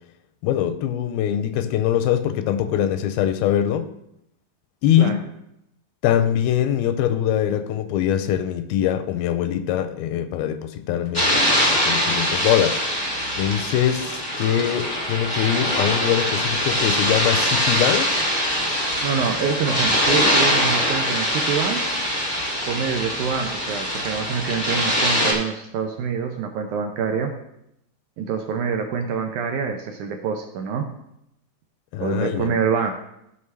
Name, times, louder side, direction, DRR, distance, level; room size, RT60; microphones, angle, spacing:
voice 1, 0.4-3.9 4.8-5.2 6.0-12.8 13.4-18.3 31.9-32.5, left 10 dB, 85° left, 9 dB, 2.4 m, -23 dB
sound 1, 11.1-25.3, equal, 10° left, 1.0 m, -23 dB
voice 2, 19.0-21.9 22.7-27.3 28.2-30.9 32.0-32.9, right 6 dB, 85° right, 4 dB, 1.7 m, -26 dB
14.0 x 5.7 x 3.3 m, 0.80 s
omnidirectional pair, 4.4 m